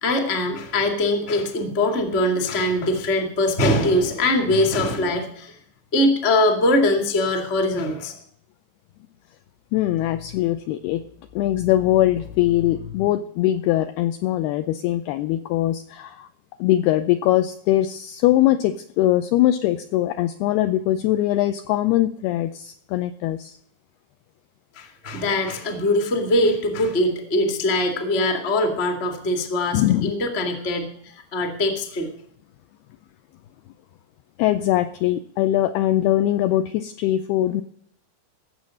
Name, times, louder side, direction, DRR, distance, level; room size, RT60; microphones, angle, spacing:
voice 1, 0.0-5.5 5.9-8.2 24.7-30.9 31.1-32.1, left 1 dB, 35° left, 4 dB, 1.0 m, -22 dB
voice 2, 9.7-11.0 11.4-16.3 16.6-23.6 29.7-30.1 34.4-37.6, left 13 dB, 85° left, 9 dB, 2.3 m, -21 dB
18.0 x 7.5 x 6.3 m, 0.65 s
omnidirectional pair, 5.1 m